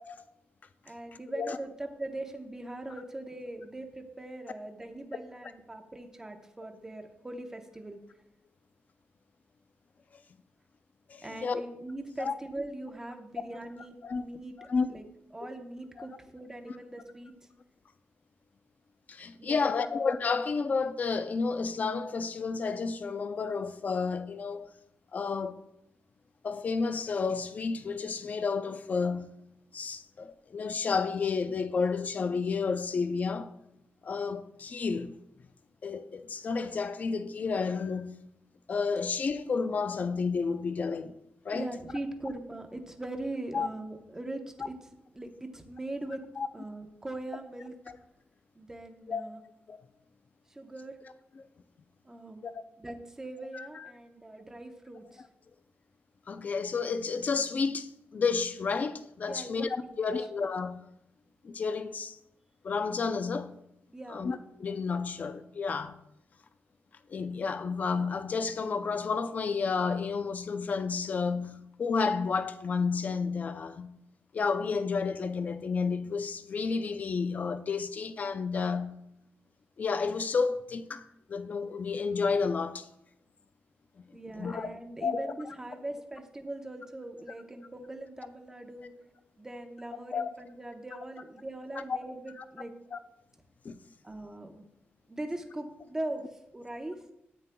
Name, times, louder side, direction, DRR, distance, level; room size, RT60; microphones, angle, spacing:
voice 1, 0.9-8.0 11.2-15.0 15.3-17.3 19.4-19.9 41.5-44.7 45.1-46.2 46.5-47.7 48.6-49.4 50.5-51.0 52.0-52.5 52.8-55.2 59.3-59.5 59.8-60.2 63.9-64.2 84.1-88.9 89.4-92.7 94.0-94.7 95.1-96.2 96.5-97.0, right 2 dB, 15° right, 0.9 m, -41 dB
voice 2, 11.1-11.6 12.2-12.3 14.0-14.4 14.7-14.9 16.0-16.1 19.1-24.7 25.1-25.6 26.4-29.4 29.7-33.5 34.0-35.2 35.8-38.2 38.7-41.1 41.4-41.7 43.5-43.7 46.4-46.5 49.1-49.2 49.7-49.8 51.4-51.5 52.4-52.6 53.5-53.9 56.3-60.8 61.4-62.2 62.6-63.6 64.1-66.0 67.1-74.0 74.3-79.0 79.8-82.9 84.0-84.1 84.4-84.7 85.0-85.3 90.1-90.3 91.9-92.0 92.9-93.0 93.6-93.8, left 5 dB, 40° left, 0.5 m, -31 dB
13.0 x 9.0 x 2.3 m
wide cardioid pair, 150°, 4 cm